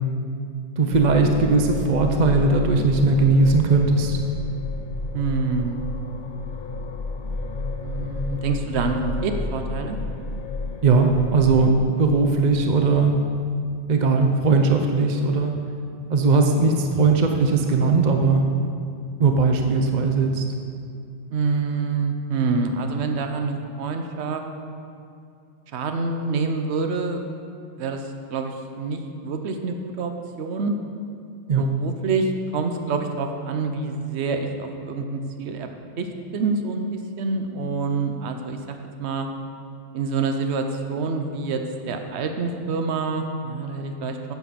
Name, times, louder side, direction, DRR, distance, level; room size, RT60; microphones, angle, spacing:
voice 1, 0.8-4.2 10.8-13.1 13.9-15.5 16.1-18.5 19.2-20.4 31.5-31.7, right 3 dB, 45° right, 4 dB, 0.8 m, -19 dB
sound 1, 0.9-11.7, left 3 dB, 50° left, 0.7 m, -31 dB
voice 2, 5.1-5.8 7.8-10.0 21.3-24.4 25.7-27.2 27.8-30.1 30.4-30.7 31.6-35.7 36.0-39.3 39.9-41.6 41.9-44.3, right 4 dB, 70° right, 5 dB, 1.1 m, -27 dB
9.2 x 7.3 x 7.0 m, 2.4 s
omnidirectional pair, 1.2 m